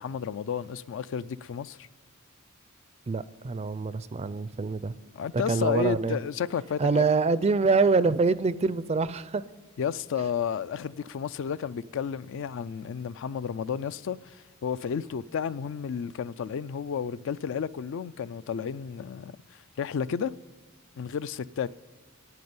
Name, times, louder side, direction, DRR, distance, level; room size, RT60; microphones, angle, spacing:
voice 1, 0.0-1.9 5.1-7.0 9.8-20.3 21.0-21.7, left 7 dB, 60° left, 0.3 m, -32 dB
voice 2, 3.1-5.0 5.3-6.2 6.8-9.4, right 4 dB, 30° right, 0.4 m, -25 dB
9.6 x 9.4 x 9.4 m
head